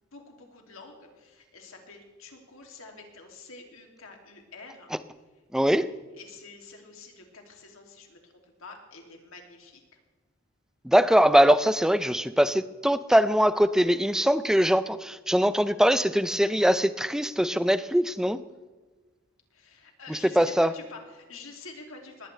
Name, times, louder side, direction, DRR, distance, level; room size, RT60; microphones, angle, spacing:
voice 1, 0.1-4.9 6.1-10.0 19.5-22.3, left 3 dB, 75° left, 2 dB, 2.7 m, -47 dB
voice 2, 5.5-5.9 10.8-18.4 20.1-20.7, equal, 5° right, 13 dB, 0.5 m, -22 dB
20.0 x 15.5 x 3.4 m, 1.3 s
head